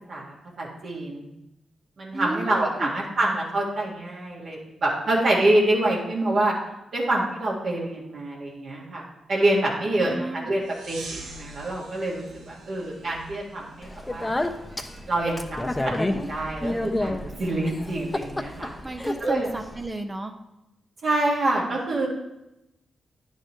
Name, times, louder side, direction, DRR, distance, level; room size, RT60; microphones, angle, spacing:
voice 1, 0.1-1.3 2.0-6.5 6.9-11.0 11.3-14.3 15.1-18.7 19.2-19.5 21.0-22.1, right 1 dB, 65° right, -5 dB, 1.9 m, -26 dB
voice 2, 2.1-2.9 10.0-10.5 18.8-20.3, right 2 dB, 25° right, 5 dB, 0.7 m, -33 dB
sound 1, 10.6-15.1, right 3 dB, 85° right, 1.0 m, -44 dB
Speech, 13.8-19.9, left 1 dB, 20° left, 0.8 m, -30 dB
9.9 x 6.5 x 3.2 m, 0.91 s
supercardioid pair, 45°, 0 cm